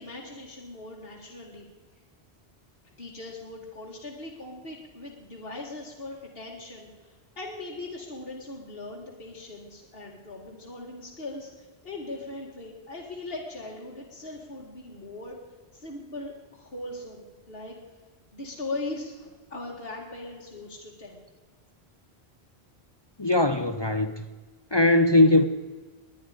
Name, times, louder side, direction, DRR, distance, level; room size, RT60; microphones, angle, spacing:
voice 1, 0.0-1.7 3.0-15.4 15.7-17.8 18.3-21.2, left 2 dB, 65° left, -3 dB, 2.3 m, -39 dB
voice 2, 23.2-24.2 24.7-25.4, left 2 dB, 30° left, 8 dB, 0.7 m, -20 dB
22.0 x 9.9 x 5.1 m, 1.3 s
omnidirectional pair, 1.1 m